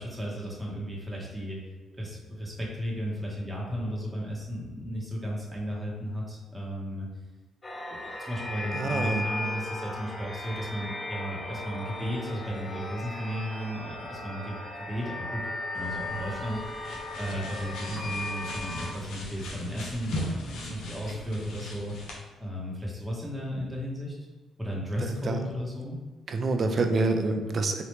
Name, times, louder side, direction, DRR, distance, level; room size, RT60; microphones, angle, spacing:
voice 1, 0.0-1.6 2.0-7.1 8.0-14.5 14.9-15.4 15.7-16.9 17.2-21.9 22.4-24.1 24.6-26.0, equal, 10° right, -4 dB, 1.3 m, -34 dB
sound 1, 7.6-18.9, left 2 dB, 25° left, 0.6 m, -36 dB
voice 2, 8.7-9.2 25.0-25.4 26.3-27.8, right 3 dB, 45° right, 6 dB, 0.5 m, -27 dB
sound 2, 15.8-22.2, left 1 dB, 80° left, 0.7 m, -39 dB
4.0 x 3.0 x 3.2 m, 1.3 s
cardioid pair, 90°, 0 cm